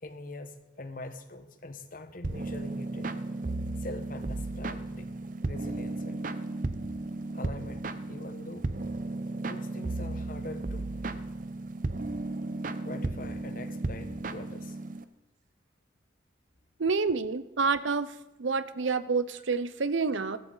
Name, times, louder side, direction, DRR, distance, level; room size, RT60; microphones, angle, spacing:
voice 1, 0.0-3.2 3.8-6.3 7.3-8.7 9.4-10.9 12.8-14.8, left 2 dB, 45° left, 8 dB, 1.2 m, -43 dB
sound 1, 2.2-15.0, right 2 dB, 45° right, 0.7 m, -35 dB
voice 2, 16.8-18.1 18.4-20.4, right 4 dB, 85° right, 14 dB, 0.7 m, -28 dB
15.0 x 14.5 x 4.0 m, 1.0 s
head